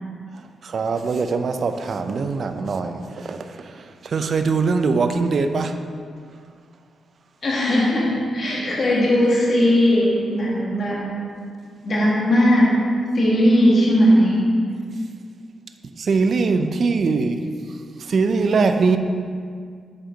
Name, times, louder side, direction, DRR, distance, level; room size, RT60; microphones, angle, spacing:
voice 1, 0.3-5.8 15.8-19.0, right 4 dB, 50° right, 7 dB, 0.4 m, -22 dB
voice 2, 7.4-11.0 11.8-12.7 13.1-14.5, equal, 45° left, -5 dB, 1.4 m, -18 dB
7.4 x 4.4 x 3.8 m, 2.1 s
wide cardioid pair, 125°, 0 cm